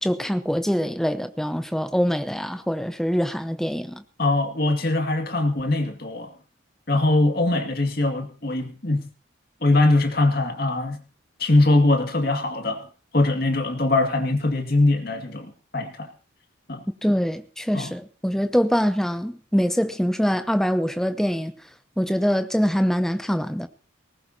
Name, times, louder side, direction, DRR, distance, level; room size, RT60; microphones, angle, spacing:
voice 1, 0.0-4.0 17.0-21.5 22.0-23.7, equal, ahead, 0.8 m, -24 dB
voice 2, 4.2-6.3 6.9-9.1 9.6-11.0 11.4-12.9 13.1-16.1 16.7-16.8 17.7-17.9, left 2 dB, 50° left, 2.2 m, -22 dB
19.5 x 18.0 x 2.9 m
head